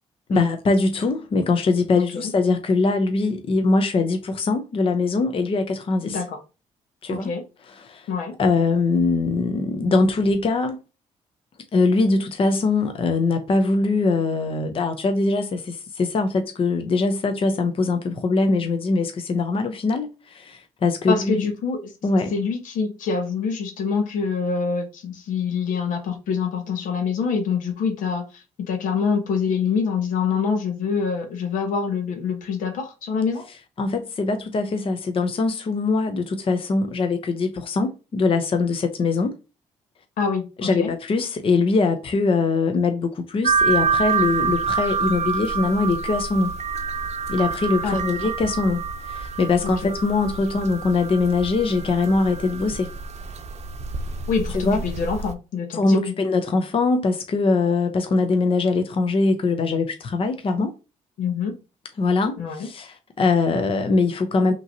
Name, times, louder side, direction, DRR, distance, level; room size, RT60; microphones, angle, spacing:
voice 1, 0.3-6.2 7.0-7.3 7.8-8.1 8.4-10.8 11.7-21.5 22.0-22.3 33.8-39.3 40.6-46.5 47.3-52.9 54.5-54.8 55.7-60.7 62.0-64.5, left 3 dB, 45° left, 0.7 m, -22 dB
voice 2, 2.0-2.3 6.1-6.4 7.1-7.4 8.1-8.4 21.1-21.9 22.3-33.4 40.2-40.9 47.8-48.1 49.6-50.0 54.3-56.1 61.2-61.6 62.4-62.7, left 5 dB, 80° left, 1.1 m, -25 dB
sound 1, 43.4-55.3, right 5 dB, 55° right, 0.6 m, -27 dB
5.4 x 3.0 x 2.7 m
cardioid pair, 80°, 13 cm